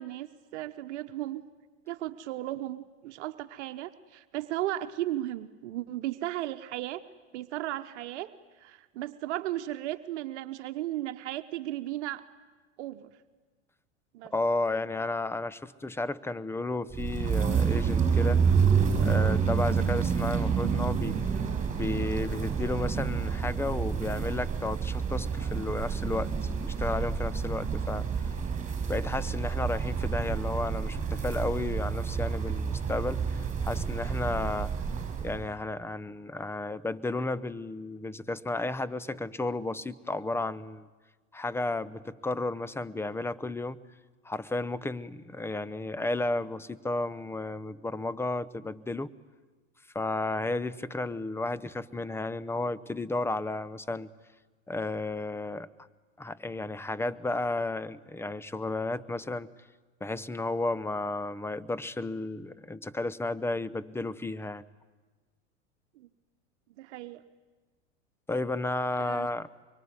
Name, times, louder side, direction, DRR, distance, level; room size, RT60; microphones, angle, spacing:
voice 1, 0.0-1.4 1.9-7.0 7.3-8.3 8.6-12.2 12.8-13.1 14.1-14.3 66.0-66.1 66.8-67.2 69.0-69.3, right 14 dB, 70° right, 9 dB, 1.2 m, -35 dB
voice 2, 14.3-18.4 19.0-21.2 21.8-28.1 28.9-34.7 35.2-40.9 41.3-43.8 44.2-49.1 49.9-54.1 54.7-55.7 56.2-59.5 60.0-64.6 68.3-69.5, left 2 dB, 5° left, 17 dB, 0.8 m, -33 dB
sound 1, 16.9-35.5, right 6 dB, 20° right, 6.6 m, -28 dB
24.0 x 23.5 x 9.7 m, 1.3 s
hypercardioid pair, 100°, 36 cm